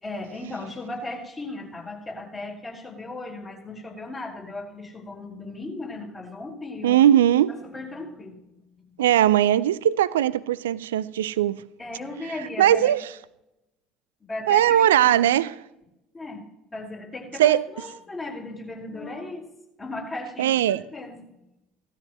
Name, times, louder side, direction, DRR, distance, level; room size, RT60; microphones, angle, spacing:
voice 1, 0.0-7.0 7.6-8.4 8.7-9.0 11.8-12.9 14.3-15.3 16.1-16.4 16.7-19.5 19.8-20.5 20.9-21.2, left 2 dB, 25° left, 4.7 m, -36 dB
voice 2, 6.8-7.5 9.0-11.6 12.6-13.0 14.5-15.5 17.4-17.6 20.4-20.8, right 11 dB, 75° right, 0.4 m, -19 dB
17.5 x 13.0 x 3.1 m
figure-of-eight pair, 60°, 0 cm